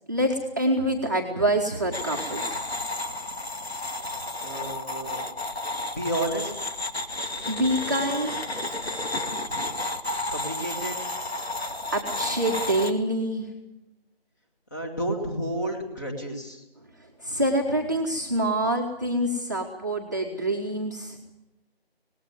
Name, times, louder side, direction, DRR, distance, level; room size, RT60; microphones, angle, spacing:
voice 1, 0.1-2.7 7.5-8.4 11.6-13.5 17.2-21.2, right 1 dB, 20° right, -2 dB, 1.4 m, -26 dB
sound 1, 1.9-12.9, left 2 dB, 80° left, 2.4 m, -32 dB
voice 2, 4.4-5.2 5.9-6.5 10.3-11.0 14.7-16.6, right 1 dB, 20° left, 2 dB, 2.3 m, -31 dB
19.5 x 17.0 x 9.5 m, 0.95 s
figure-of-eight pair, 175°, 31 cm